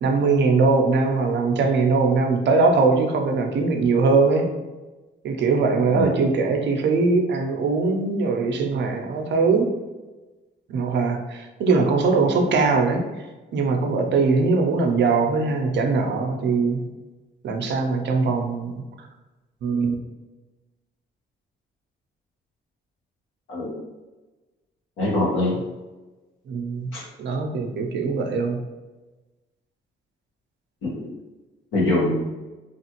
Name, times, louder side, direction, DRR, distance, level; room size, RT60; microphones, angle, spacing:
voice 1, 0.0-4.5 5.2-9.7 10.7-13.0 13.5-16.8 17.4-18.8 19.6-19.9 26.5-26.9 27.2-28.6, right 4 dB, 65° right, 3 dB, 0.6 m, -21 dB
voice 2, 5.9-6.2 23.5-23.7 25.0-25.6 26.9-27.0 30.8-31.1 31.7-32.2, left 2 dB, 80° left, -5 dB, 1.3 m, -23 dB
3.1 x 2.4 x 2.9 m, 1.2 s
cardioid pair, 90°, 20 cm